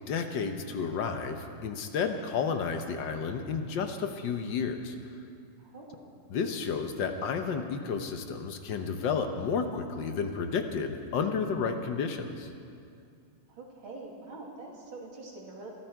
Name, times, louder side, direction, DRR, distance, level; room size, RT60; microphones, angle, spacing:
voice 1, 0.1-4.9 6.3-12.5, left 5 dB, 65° left, 6 dB, 1.6 m, -31 dB
voice 2, 5.6-6.1 13.5-15.7, right 3 dB, 80° right, -2 dB, 3.3 m, -45 dB
21.5 x 13.5 x 4.7 m, 2.4 s
omnidirectional pair, 2.2 m